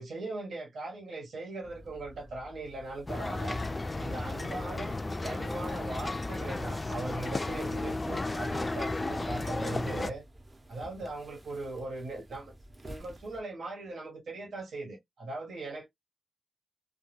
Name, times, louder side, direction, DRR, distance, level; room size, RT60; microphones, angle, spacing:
voice 1, 0.0-3.6 4.0-10.2 10.7-12.5 12.8-15.9, right 2 dB, 85° right, 1.0 m, -39 dB
sound 1, 1.6-13.4, equal, 25° right, 0.6 m, -51 dB
sound 2, 3.1-10.1, left 2 dB, 25° left, 0.3 m, -34 dB
2.2 x 2.2 x 3.1 m
wide cardioid pair, 110°, 0 cm